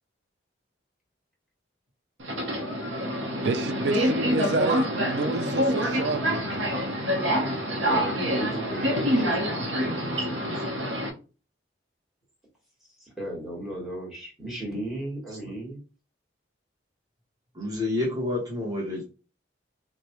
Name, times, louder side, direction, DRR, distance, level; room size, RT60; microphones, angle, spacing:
Subway metro underground, 2.2-11.1, equal, 85° right, 0.8 m, -26 dB
voice 1, 3.4-6.7, right 2 dB, 60° right, 0.4 m, -29 dB
voice 2, 7.9-9.5 13.0-15.8, right 1 dB, ahead, 1.5 m, -35 dB
voice 3, 9.4-10.7 15.4-15.5 17.5-19.0, left 2 dB, 20° right, 1.0 m, -31 dB
4.9 x 2.2 x 3.0 m
head